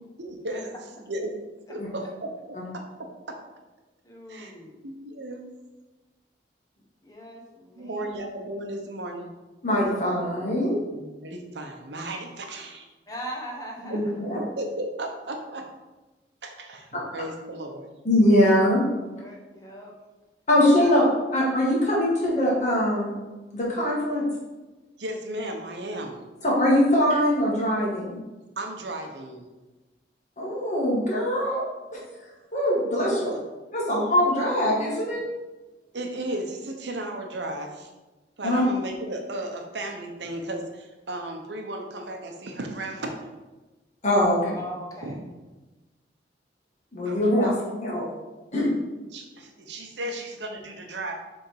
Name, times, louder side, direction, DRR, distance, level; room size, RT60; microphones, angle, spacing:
voice 1, 0.2-0.7 1.1-1.4 1.7-3.4 4.3-4.5 4.8-5.4 7.8-9.3 10.9-12.9 13.9-15.7 16.4-18.0 25.0-26.2 26.9-27.0 28.6-29.4 33.1-33.2 35.9-37.9 38.4-43.3 45.0-45.2 47.0-47.2 49.1-51.1, right 1 dB, 80° right, 3 dB, 0.9 m, -35 dB
voice 2, 4.0-4.8 7.0-8.0 13.1-14.0 19.2-19.9 20.8-21.0 44.6-45.2 47.4-47.6 50.0-50.1, equal, 20° left, -1 dB, 1.1 m, -39 dB
voice 3, 9.6-10.8 13.9-14.4 18.0-18.8 20.5-21.0 21.3-23.1 23.5-24.3 26.4-28.2 30.4-31.6 31.9-32.3 32.5-33.3 33.7-35.2 38.4-38.6 44.0-44.6 46.9-47.5 47.8-48.1 48.5-48.7, left 1 dB, 40° left, -4 dB, 2.0 m, -22 dB
6.6 x 3.6 x 4.7 m, 1.2 s
head